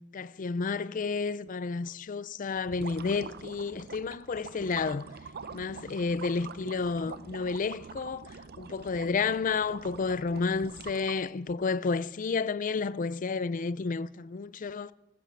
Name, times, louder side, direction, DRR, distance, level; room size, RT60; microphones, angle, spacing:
voice 1, 0.1-5.1 5.5-8.2 8.6-14.9, left 4 dB, 40° left, 0.4 m, -31 dB
sound 1, 2.6-11.5, right 5 dB, 50° right, 0.6 m, -45 dB
14.0 x 13.5 x 7.0 m
head